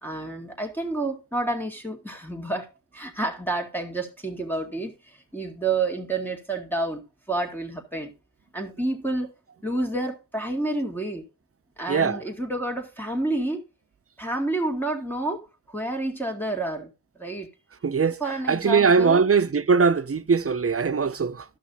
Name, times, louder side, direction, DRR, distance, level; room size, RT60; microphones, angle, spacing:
voice 1, 0.0-2.7 2.9-8.1 8.5-9.3 9.6-11.2 11.8-13.6 14.2-16.9 17.2-17.5 18.0-19.2, right 2 dB, 5° left, 2.1 m, -29 dB
voice 2, 11.9-12.2 17.8-18.2 18.5-21.4, right 5 dB, 35° right, 0.6 m, -21 dB
12.5 x 5.9 x 3.9 m
cardioid pair, 55°, 41 cm